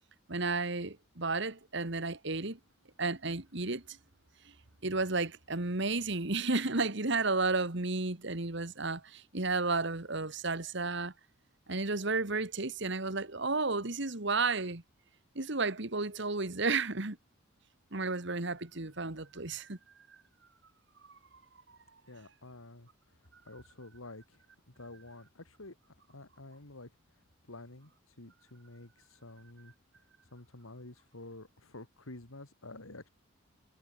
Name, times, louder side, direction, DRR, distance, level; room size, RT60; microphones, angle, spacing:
voice 1, 0.3-2.6 3.0-4.0 4.8-11.1 11.7-14.8 15.4-17.2 17.9-19.8 21.1-21.2, right 3 dB, 60° right, 1.9 m, -32 dB
voice 2, 22.1-23.2 23.4-25.8 26.1-26.9 27.4-29.7 30.3-33.1, left 2 dB, 85° left, 2.8 m, -50 dB
head